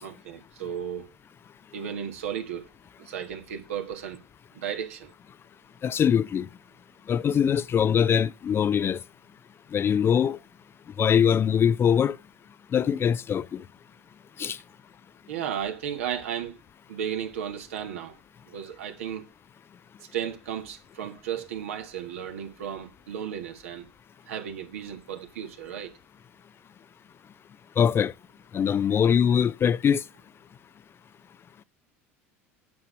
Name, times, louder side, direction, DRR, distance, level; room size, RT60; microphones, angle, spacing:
voice 1, 0.0-1.1 1.7-2.7 3.0-4.2 4.5-5.1 7.3-7.4 15.3-16.6 16.9-18.2 18.5-19.3 20.0-23.9 24.2-25.9, right 9 dB, 75° right, 1.5 m, -34 dB
voice 2, 5.8-6.5 7.1-9.0 9.7-10.4 11.0-12.2 12.7-13.6 14.4-14.6 27.8-28.1 28.5-30.0, left 8 dB, 30° left, 0.4 m, -22 dB
9.4 x 6.6 x 6.2 m
hypercardioid pair, 75°, 7 cm